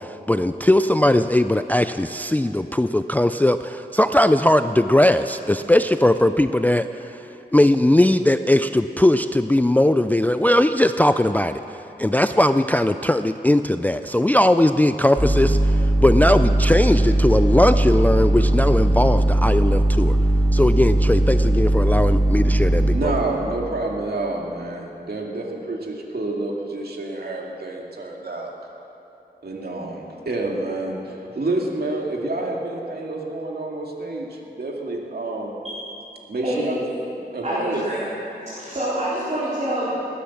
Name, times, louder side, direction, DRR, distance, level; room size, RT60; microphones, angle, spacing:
voice 1, 0.0-7.3 7.5-20.2 20.5-23.1, left 1 dB, 10° left, 10 dB, 0.3 m, -19 dB
sound 1, 15.2-23.0, right 1 dB, 15° right, 3.7 m, -18 dB
voice 2, 22.9-28.5 29.4-35.6 36.3-36.8 37.3-37.9, right 2 dB, 70° right, -1 dB, 2.2 m, -28 dB
voice 3, 35.6-36.0 36.4-36.8 37.4-38.0 38.4-39.9, right 1 dB, 40° right, -12 dB, 4.6 m, -27 dB
19.0 x 10.0 x 7.2 m, 3.0 s
wide cardioid pair, 85°, 17 cm